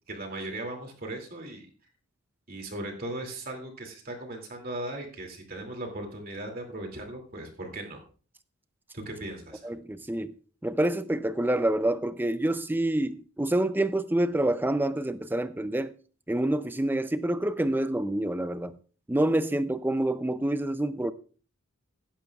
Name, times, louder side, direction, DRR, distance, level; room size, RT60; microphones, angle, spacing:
voice 1, 0.1-1.7 2.5-8.0 8.9-9.6, right 1 dB, 40° right, 2.5 m, -38 dB
voice 2, 9.6-10.3 10.6-16.0 16.3-18.8 19.1-21.1, right 1 dB, 10° right, 0.4 m, -27 dB
15.5 x 11.5 x 2.3 m
head